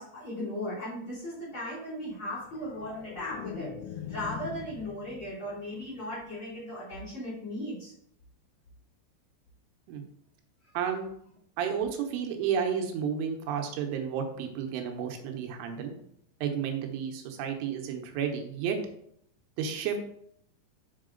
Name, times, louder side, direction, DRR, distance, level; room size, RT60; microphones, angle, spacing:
voice 1, 0.0-7.9, left 1 dB, 30° left, -9 dB, 3.3 m, -37 dB
sound 1, 2.3-5.5 5.8-6.2, left 9 dB, 90° left, 3.1 m, -42 dB
voice 2, 10.7-11.1 11.6-15.9 16.4-18.8 19.6-20.0, right 7 dB, 85° right, 4 dB, 3.4 m, -31 dB
6.9 x 5.7 x 3.8 m, 0.70 s
omnidirectional pair, 5.5 m